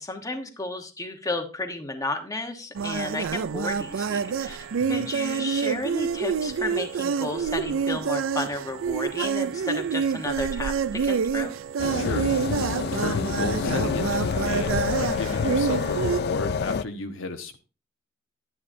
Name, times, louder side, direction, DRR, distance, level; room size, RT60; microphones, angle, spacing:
voice 1, 0.0-11.5, left 2 dB, 15° left, 4 dB, 1.1 m, -33 dB
sound 1, 2.7-16.2, right 6 dB, 80° right, 0.4 m, -27 dB
sound 2, 11.8-16.8, left 6 dB, 55° left, 0.3 m, -28 dB
voice 2, 11.9-12.3 12.9-17.6, left 2 dB, 75° left, 6 dB, 1.1 m, -33 dB
10.5 x 10.0 x 2.7 m, 0.32 s
head